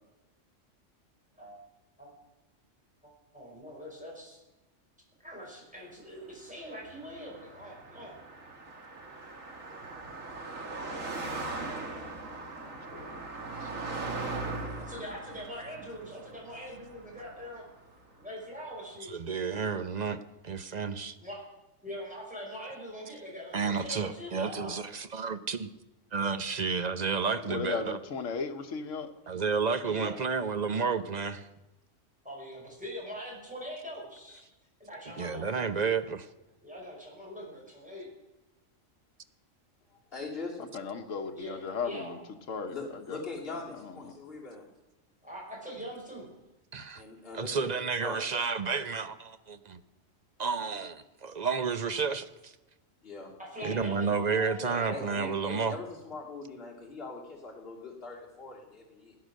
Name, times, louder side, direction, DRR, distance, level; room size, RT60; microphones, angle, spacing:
voice 1, 3.0-4.4 5.2-8.2 14.9-17.6 18.2-19.1 21.2-21.4 21.8-24.7 29.8-30.2 32.2-34.4 34.8-35.7 36.6-38.1 41.4-42.1 45.2-46.3 53.4-55.7, equal, 5° right, -3 dB, 5.6 m, -42 dB
Car passing by, 6.5-18.0, right 3 dB, 85° right, 2.2 m, -40 dB
voice 2, 12.6-13.2 27.5-29.1 40.7-42.2 42.5-43.2 43.5-44.1, left 5 dB, 75° left, 4 dB, 1.4 m, -36 dB
voice 3, 19.1-21.2 23.5-25.7 26.1-28.0 29.3-31.5 35.2-36.3 46.7-47.0 47.3-49.8 50.4-52.5 53.6-55.8, right 5 dB, 40° right, 11 dB, 0.8 m, -31 dB
voice 4, 39.9-40.7 42.7-44.6 46.9-47.7 48.0-48.2 53.0-53.3 53.6-53.8 54.6-59.2, left 3 dB, 50° left, -3 dB, 2.9 m, -41 dB
18.0 x 10.0 x 6.4 m, 1.0 s
omnidirectional pair, 1.3 m